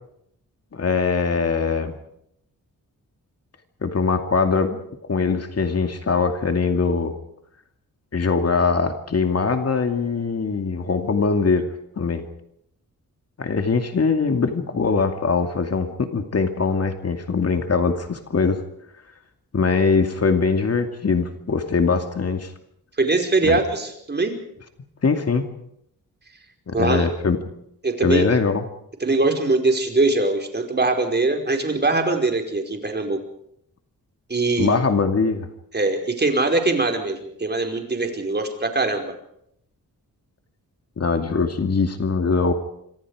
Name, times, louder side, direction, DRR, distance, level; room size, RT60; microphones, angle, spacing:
voice 1, 0.7-2.0 3.8-4.8 5.1-7.1 8.1-11.7 12.0-12.2 13.4-18.6 19.5-22.5 23.4-23.6 25.0-25.5 26.7-27.4 28.0-28.6 34.6-35.5 41.0-42.5, left 4 dB, 45° left, 6 dB, 2.5 m, -22 dB
voice 2, 23.0-24.3 26.7-27.1 27.8-28.2 29.0-33.2 34.3-34.8 35.7-39.1, right 3 dB, 30° right, 4 dB, 5.1 m, -22 dB
27.0 x 25.0 x 5.0 m, 0.73 s
wide cardioid pair, 110°, 34 cm